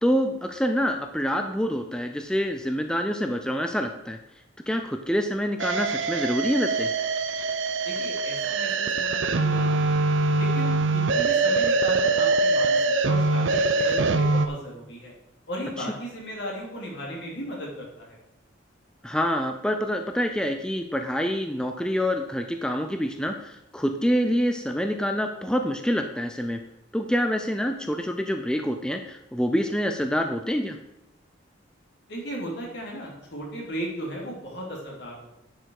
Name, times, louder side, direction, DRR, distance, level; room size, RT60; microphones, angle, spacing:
voice 1, 0.0-4.2 4.7-6.9 15.8-15.9 19.0-26.6 26.9-30.8, equal, 5° left, 5 dB, 0.5 m, -26 dB
sound 1, 5.6-14.5, right 3 dB, 80° right, 0.7 m, -23 dB
voice 2, 7.8-10.0 10.3-12.8 13.0-15.1 15.5-18.2 32.1-35.3, equal, 60° left, -2 dB, 3.1 m, -36 dB
10.0 x 6.7 x 4.7 m, 0.88 s
head